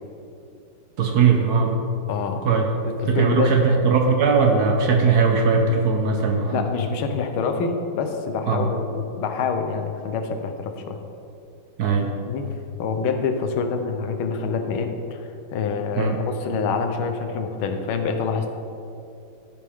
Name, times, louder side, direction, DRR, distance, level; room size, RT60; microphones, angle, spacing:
voice 1, 1.0-1.7 2.4-2.7 3.1-6.6 8.5-8.7 11.8-12.1 16.0-16.2, right 5 dB, 60° right, 3 dB, 1.1 m, -19 dB
voice 2, 2.1-2.4 2.8-3.5 6.5-11.0 12.3-12.5 12.8-18.5, left 5 dB, 90° left, 6 dB, 1.6 m, -26 dB
13.5 x 6.9 x 3.6 m, 2.7 s
omnidirectional pair, 2.2 m